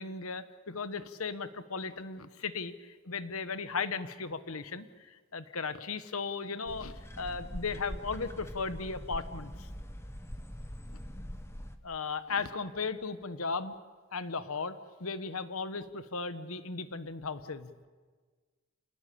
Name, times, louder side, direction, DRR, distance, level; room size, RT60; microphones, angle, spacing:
voice 1, 0.0-2.7 3.0-9.7 11.8-13.8 14.1-17.9, left 4 dB, 80° left, 12 dB, 1.3 m, -36 dB
sound 1, 6.7-11.8, equal, 10° left, 1.3 m, -43 dB
28.0 x 19.0 x 8.6 m, 1.5 s
head